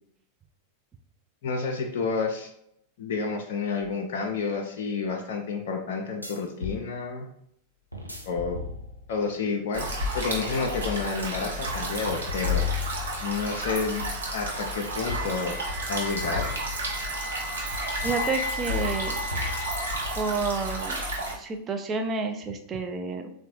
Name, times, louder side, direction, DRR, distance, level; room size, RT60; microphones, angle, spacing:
voice 1, 1.4-2.5 3.0-7.3 8.2-8.6 9.1-12.6 13.2-14.0 14.3-15.6 15.9-16.5, left 4 dB, 55° left, 2 dB, 0.4 m, -30 dB
sound 1, 3.8-3.9 6.2-6.8 7.9-9.2 11.8-13.5 16.2-17.2 18.0-18.4 18.7-20.0, left 6 dB, 90° right, 0.4 m, -33 dB
sound 2, 9.7-21.4, right 1 dB, 70° right, 0.8 m, -32 dB
Wind instrument woodwind instrument, 15.0-21.0, left 3 dB, 30° left, 0.7 m, -37 dB
voice 2, 18.0-19.2 20.1-21.0 21.3-23.3, right 4 dB, 25° right, 5 dB, 0.4 m, -30 dB
3.7 x 2.1 x 2.9 m, 0.73 s
figure-of-eight pair, 90°, 0 cm